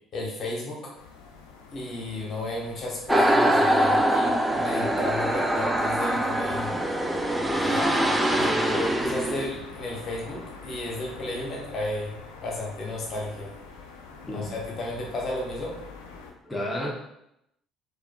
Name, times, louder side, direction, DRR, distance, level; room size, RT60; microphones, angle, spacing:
voice 1, 0.1-0.9 1.7-7.1 7.5-13.5 14.3-15.7, left 1 dB, 45° left, -1 dB, 0.9 m, -33 dB
sound 1, 0.9-16.3, left 4 dB, 75° left, 0.4 m, -45 dB
sound 2, 3.1-9.5, right 1 dB, 10° right, 0.4 m, -23 dB
voice 2, 8.3-8.8 14.3-14.5 16.5-16.9, left 1 dB, 10° left, -3 dB, 0.8 m, -31 dB
4.6 x 2.4 x 2.2 m, 0.81 s
figure-of-eight pair, 55°, 0 cm